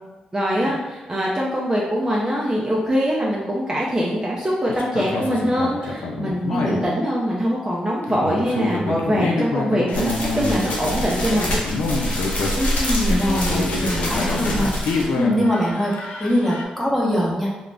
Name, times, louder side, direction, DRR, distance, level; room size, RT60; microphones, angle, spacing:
voice 1, 0.3-11.6, equal, 25° right, -4 dB, 0.5 m, -23 dB
sound 1, 4.7-6.8 8.0-16.6, left 3 dB, 80° left, 0.4 m, -27 dB
voice 2, 6.5-6.8 12.6-17.5, equal, 5° left, -5 dB, 0.9 m, -23 dB
sound 2, 9.9-15.1, equal, 60° left, 0.9 m, -25 dB
2.4 x 2.1 x 3.3 m, 1.1 s
cardioid pair, 60°, 3 cm